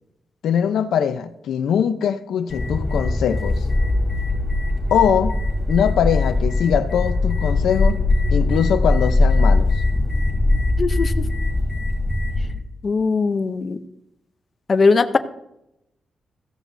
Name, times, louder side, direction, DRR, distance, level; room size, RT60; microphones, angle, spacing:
voice 1, 0.4-3.7 4.9-5.4 5.7-8.0 8.3-9.7, left 8 dB, 85° left, 0.7 m, -21 dB
sound 1, 2.5-12.5, left 2 dB, 10° left, 3.8 m, -20 dB
voice 2, 10.8-11.1 12.8-13.8 14.7-15.2, left 4 dB, 30° left, 0.7 m, -19 dB
15.5 x 14.5 x 2.7 m
wide cardioid pair, 175°, 0 cm